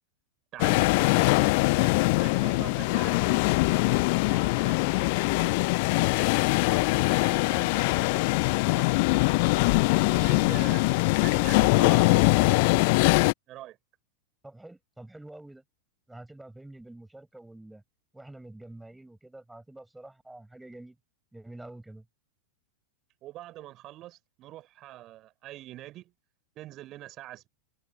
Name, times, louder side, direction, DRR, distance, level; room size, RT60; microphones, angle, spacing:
voice 1, 0.5-5.6 6.0-8.9 9.3-9.8 10.1-10.9 11.2-12.9 13.5-13.8 23.2-26.1 26.6-27.5, right 15 dB, 35° right, 6.1 m, -44 dB
sound 1, 0.6-13.3, left 27 dB, 50° left, 0.6 m, -22 dB
voice 2, 14.4-15.6 16.1-17.8 18.1-21.0 21.3-22.1, right 2 dB, 5° right, 7.0 m, -47 dB
figure-of-eight pair, 90°, 0 cm